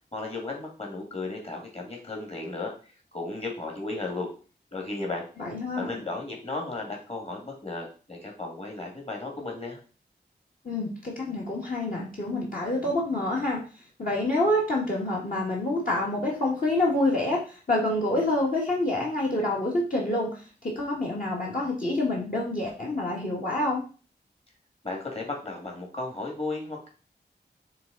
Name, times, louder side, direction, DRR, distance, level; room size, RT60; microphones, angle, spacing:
voice 1, 0.1-2.7 3.1-4.3 4.7-5.2 5.8-9.8 24.8-26.9, left 3 dB, 35° left, 0 dB, 2.2 m, -34 dB
voice 2, 5.4-5.9 10.6-13.6 14.0-23.8, left 1 dB, 55° left, -2 dB, 1.9 m, -27 dB
6.8 x 3.6 x 4.0 m, 0.37 s
wide cardioid pair, 65°, 18 cm